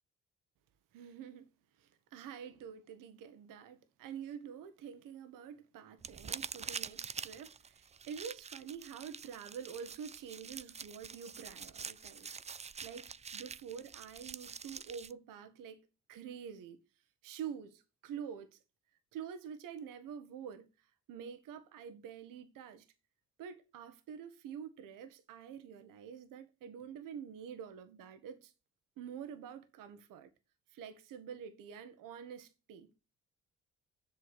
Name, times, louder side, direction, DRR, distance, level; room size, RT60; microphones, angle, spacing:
voice 1, 0.9-1.5 1.8-16.8 17.2-18.6 19.1-22.9 23.4-28.5 29.0-30.3 30.7-32.9, right 7 dB, 70° right, 1.3 m, -47 dB
sound 1, 6.0-15.1, right 6 dB, 20° right, 0.4 m, -46 dB
8.4 x 6.3 x 8.1 m
hypercardioid pair, 45°, 34 cm